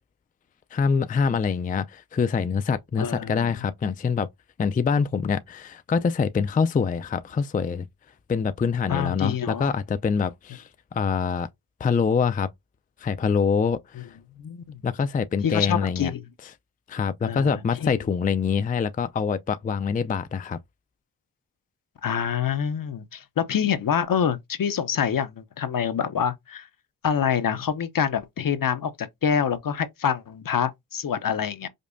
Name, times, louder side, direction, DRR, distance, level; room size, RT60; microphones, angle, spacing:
voice 1, 0.7-4.3 4.6-7.9 8.3-11.5 11.8-12.5 13.0-14.1 14.8-16.1 16.9-20.6, left 5 dB, 20° left, 0.4 m, -25 dB
voice 2, 3.0-3.6 8.9-9.7 14.0-14.1 14.4-14.8 15.4-16.2 17.2-17.9 22.0-26.7 27.0-31.7, left 8 dB, 60° left, 0.7 m, -26 dB
5.2 x 2.1 x 2.5 m
cardioid pair, 45°, 39 cm